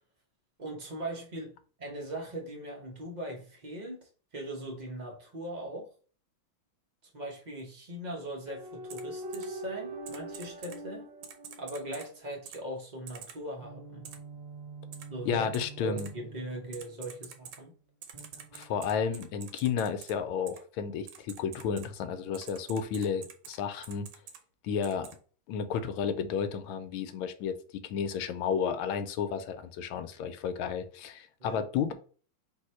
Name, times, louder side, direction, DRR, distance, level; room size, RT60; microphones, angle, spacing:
voice 1, 0.6-1.5 1.8-5.9 7.1-11.1 11.6-14.1 15.1-15.5 15.8-17.7 31.4-31.6, right 1 dB, 65° right, 0.4 m, -40 dB
sound 1, 8.5-12.2 13.6-17.3 18.1-19.4, right 2 dB, 40° right, 1.0 m, -44 dB
Typing, 8.9-9.0 9.3-9.5 10.1-10.8 11.2-12.1 12.5-12.6 13.1-13.4 14.0-14.2 14.9-15.0 15.5-15.7 16.0-16.1 16.7-17.6 18.0-20.1 20.5-20.6 21.1-21.9 22.3-23.6 23.8-24.4 24.8-25.1, right 8 dB, 85° right, 1.6 m, -46 dB
voice 2, 15.2-16.1 18.5-24.1 24.6-25.1 25.5-27.5 27.8-31.9, left 7 dB, 80° left, 1.4 m, -32 dB
3.9 x 2.8 x 4.3 m
omnidirectional pair, 2.3 m